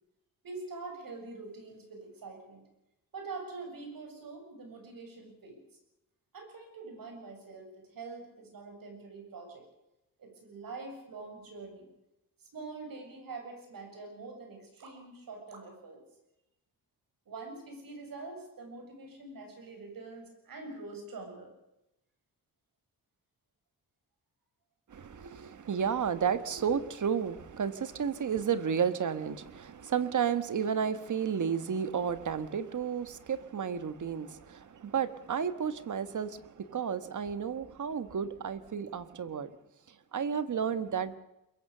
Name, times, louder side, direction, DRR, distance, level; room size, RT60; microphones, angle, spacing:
voice 1, 0.4-2.6 3.1-5.6 6.3-9.6 10.2-11.9 12.4-16.0 17.3-21.5, right 3 dB, 75° right, 4 dB, 7.2 m, -45 dB
voice 2, 24.9-39.5 40.1-41.2, right 7 dB, 60° right, 12 dB, 1.4 m, -32 dB
22.5 x 22.5 x 6.8 m, 0.90 s
wide cardioid pair, 140°, 34 cm